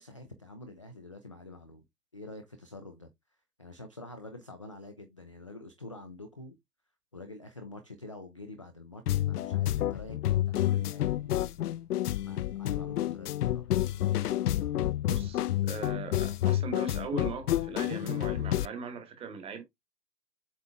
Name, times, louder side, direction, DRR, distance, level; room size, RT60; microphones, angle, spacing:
voice 1, 0.0-1.8 2.1-3.1 3.6-6.6 7.1-11.6 12.2-13.7 14.0-14.3, left 2 dB, 20° left, 0.4 m, -47 dB
sound 1, 9.1-18.7, left 13 dB, 65° left, 0.6 m, -29 dB
voice 2, 15.1-19.6, right 6 dB, 10° right, 1.2 m, -40 dB
7.8 x 3.5 x 3.4 m
hypercardioid pair, 140°, 50 cm